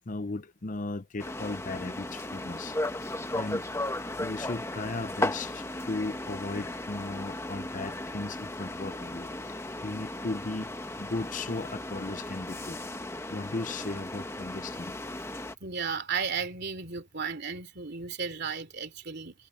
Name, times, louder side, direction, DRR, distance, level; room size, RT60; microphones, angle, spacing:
voice 1, 0.1-3.6 4.2-9.6 9.8-10.7 11.0-12.8 13.3-15.0, left 2 dB, 40° left, 0.7 m, -36 dB
sound 1, 1.2-15.6, left 1 dB, 15° left, 1.2 m, -36 dB
voice 2, 15.6-19.3, right 5 dB, 50° right, 3.0 m, -34 dB
head